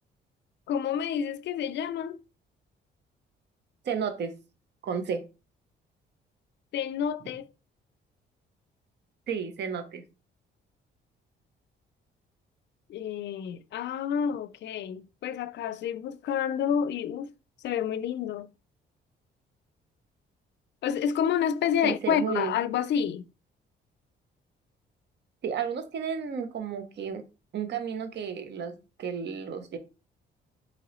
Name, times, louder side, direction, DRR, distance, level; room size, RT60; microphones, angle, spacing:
voice 1, 0.7-2.2 6.7-7.5 12.9-17.3 17.6-18.5 20.8-23.2, left 8 dB, 65° left, 0.4 m, -29 dB
voice 2, 3.8-4.3 4.8-5.2 9.3-10.0 21.8-22.6 25.4-27.2 27.5-29.8, right 7 dB, 60° right, 0.9 m, -32 dB
3.8 x 3.0 x 3.1 m
cardioid pair, 90°, 20 cm